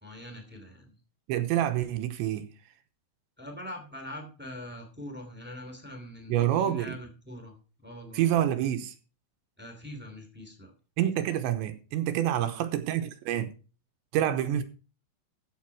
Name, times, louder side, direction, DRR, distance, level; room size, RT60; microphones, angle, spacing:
voice 1, 0.0-0.9 3.4-7.6 7.8-8.2 9.6-10.7 12.4-12.6, left 1 dB, 5° right, 0.8 m, -43 dB
voice 2, 1.3-2.5 6.3-7.0 8.1-9.0 11.0-13.5 14.1-14.6, right 11 dB, 80° right, 3.0 m, -27 dB
14.0 x 6.8 x 4.6 m
omnidirectional pair, 5.5 m